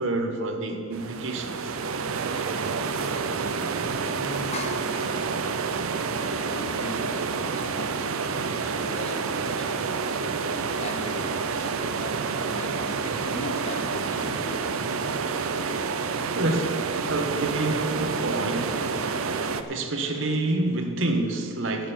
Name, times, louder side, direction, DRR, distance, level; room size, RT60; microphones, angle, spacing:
voice 1, 0.0-1.7 16.3-18.8 19.7-21.9, right 2 dB, 65° right, 1.1 m, -28 dB
sound 1, 0.9-19.6, right 5 dB, 80° right, 0.6 m, -28 dB
voice 2, 4.0-5.1 6.3-8.3 8.6-10.1 10.8-12.1 12.4-14.9, left 1 dB, 30° left, 1.0 m, -39 dB
11.5 x 7.4 x 7.2 m
head